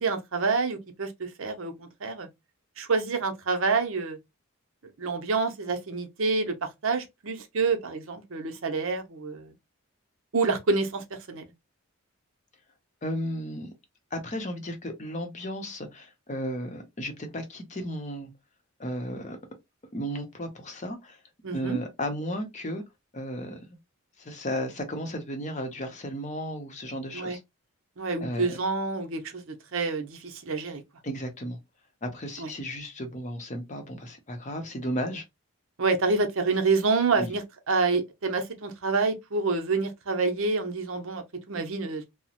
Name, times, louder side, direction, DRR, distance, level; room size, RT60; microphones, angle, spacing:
voice 1, 0.0-2.3 2.8-4.2 5.0-6.5 6.8-9.5 10.3-11.5 21.4-21.8 27.1-27.4 28.0-30.8 32.4-32.5 35.8-42.0, right 4 dB, 60° right, 0.6 m, -27 dB
voice 2, 13.0-13.7 14.1-18.3 18.8-19.4 19.9-21.2 21.5-22.8 23.1-23.7 24.2-27.4 28.2-28.6 31.0-31.6 32.0-35.2 37.1-37.4, equal, 30° left, 0.7 m, -34 dB
2.9 x 2.0 x 2.8 m
head